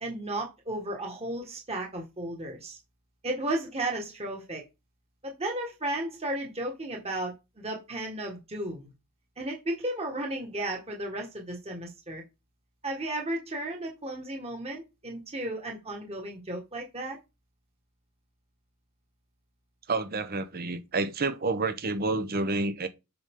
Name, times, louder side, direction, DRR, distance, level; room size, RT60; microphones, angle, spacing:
voice 1, 0.0-2.8 3.2-4.6 5.2-8.9 9.4-12.2 12.8-17.2, right 1 dB, 30° right, 1.7 m, -34 dB
voice 2, 19.9-22.9, right 3 dB, 45° right, 0.9 m, -29 dB
7.9 x 5.7 x 3.7 m
head